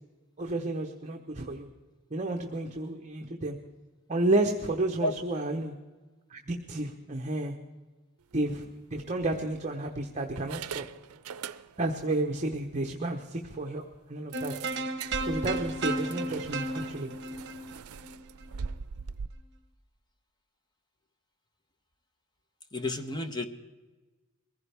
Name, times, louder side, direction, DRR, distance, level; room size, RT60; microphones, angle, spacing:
voice 1, 0.4-1.7 2.1-3.6 4.1-5.7 6.3-7.5 8.3-10.9 11.8-14.5 15.3-17.1, right 2 dB, 30° right, 2 dB, 0.9 m, -31 dB
sound 1, 8.3-8.5 9.2-9.9 10.4-12.0 12.3-12.5 12.9-13.0 13.3-13.4 14.3-19.3, right 6 dB, 85° right, 0.5 m, -41 dB
sound 2, 14.3-18.6, right 2 dB, 50° right, 1.1 m, -34 dB
voice 2, 22.7-23.5, left 2 dB, 20° left, 8 dB, 0.9 m, -31 dB
22.5 x 15.5 x 3.5 m, 1.2 s
head